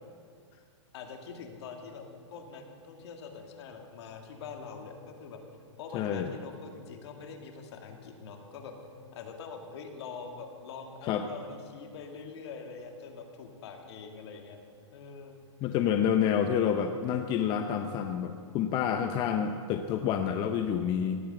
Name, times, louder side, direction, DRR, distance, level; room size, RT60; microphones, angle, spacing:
voice 1, 0.9-2.0 2.3-5.4 5.8-8.7 9.1-14.6 14.9-15.4, left 5 dB, 60° left, 4 dB, 2.3 m, -44 dB
voice 2, 5.9-6.3 11.0-11.3 15.6-21.2, left 8 dB, 30° left, 6 dB, 0.7 m, -28 dB
17.5 x 8.1 x 7.8 m, 2.2 s
hypercardioid pair, 140°, 16 cm